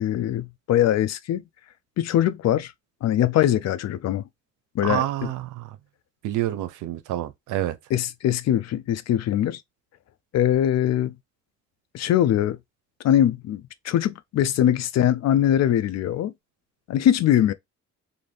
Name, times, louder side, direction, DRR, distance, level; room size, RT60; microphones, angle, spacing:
voice 1, 0.0-1.4 2.0-2.7 3.0-4.2 4.7-5.3 7.9-9.6 10.3-11.1 11.9-12.6 13.0-16.3 16.9-17.5, left 11 dB, 60° left, 0.5 m, -22 dB
voice 2, 4.8-5.8 6.2-7.8, right 13 dB, 90° right, 0.6 m, -28 dB
2.6 x 2.6 x 3.3 m
cardioid pair, 90°, 30 cm